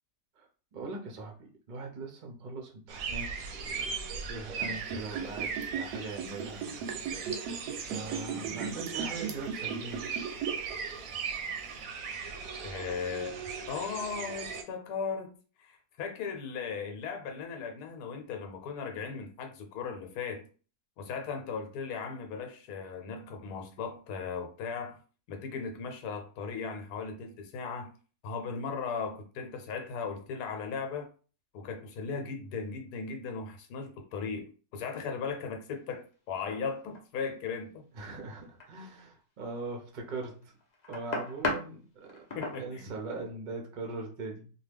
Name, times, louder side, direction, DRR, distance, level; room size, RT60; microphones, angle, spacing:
voice 1, 0.4-6.6 7.2-7.5 7.8-10.1 37.9-40.5 40.9-42.2 42.5-44.5, right 3 dB, 50° right, 0.5 m, -41 dB
sound 1, 2.9-14.6, right 6 dB, 70° right, 0.9 m, -38 dB
Liquid, 4.6-10.7 11.0-11.1, right 6 dB, 90° right, 1.2 m, -36 dB
voice 2, 12.6-13.3 13.7-20.5 21.0-25.0 25.3-27.9 28.2-31.1 31.5-37.9 42.3-42.9, left 5 dB, 80° left, 1.2 m, -37 dB
sound 2, 35.9-36.1 36.5-37.0 38.4-39.0 39.8-41.7 42.0-42.6, left 3 dB, 50° left, 0.5 m, -35 dB
2.7 x 2.3 x 3.3 m
omnidirectional pair, 1.7 m